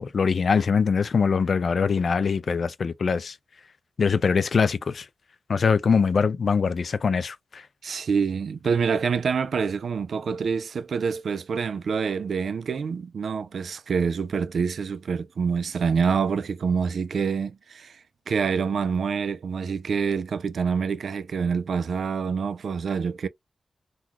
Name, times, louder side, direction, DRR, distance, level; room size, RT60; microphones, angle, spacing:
voice 1, 0.0-3.3 4.0-5.1 5.5-7.6, left 5 dB, 60° left, 0.4 m, -23 dB
voice 2, 7.8-23.3, right 6 dB, 80° right, 0.4 m, -26 dB
3.7 x 2.3 x 2.9 m
wide cardioid pair, 135°, 0 cm